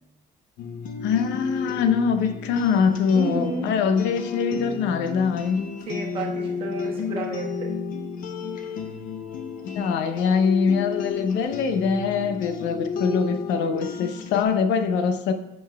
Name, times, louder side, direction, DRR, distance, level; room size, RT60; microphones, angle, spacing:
sound 1, 0.6-14.4, left 5 dB, 50° left, 0.6 m, -33 dB
voice 1, 1.0-5.6 9.6-15.3, left 6 dB, 90° left, 8 dB, 0.7 m, -23 dB
voice 2, 3.1-3.7 5.9-7.7, right 3 dB, 30° right, -3 dB, 1.4 m, -31 dB
13.0 x 5.4 x 2.3 m, 0.90 s
cardioid pair, 180°, 18 cm